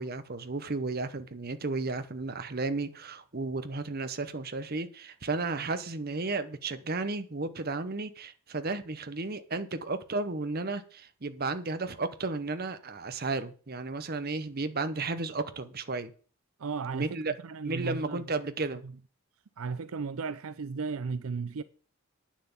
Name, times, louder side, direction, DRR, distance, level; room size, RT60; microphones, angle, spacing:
voice 1, 0.0-16.1 16.9-17.3 17.6-18.8, right 3 dB, 45° right, 0.9 m, -33 dB
sound 1, 0.8-3.6, right 1 dB, 10° right, 3.3 m, -62 dB
voice 2, 16.6-18.2 18.8-18.9 19.6-21.6, right 4 dB, 70° right, 0.5 m, -35 dB
9.4 x 7.2 x 7.2 m
head